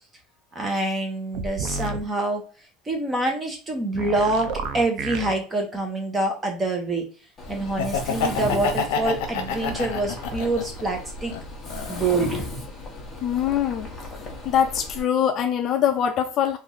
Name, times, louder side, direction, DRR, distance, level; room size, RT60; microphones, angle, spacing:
voice 1, 0.5-2.4 2.9-7.0 7.5-11.3 11.9-12.5, right 2 dB, 15° right, 0.8 m, -26 dB
sound 1, 1.3-2.0 4.0-5.3, right 4 dB, 55° right, 0.5 m, -31 dB
Mechanisms, 7.4-15.0, left 2 dB, 15° left, 0.9 m, -36 dB
Laughter, 7.6-10.8 11.3-12.4, left 5 dB, 80° left, 0.7 m, -28 dB
voice 2, 13.2-13.9 14.5-16.6, left 9 dB, 35° left, 0.3 m, -23 dB
3.1 x 2.5 x 3.8 m
cardioid pair, 165°, 0 cm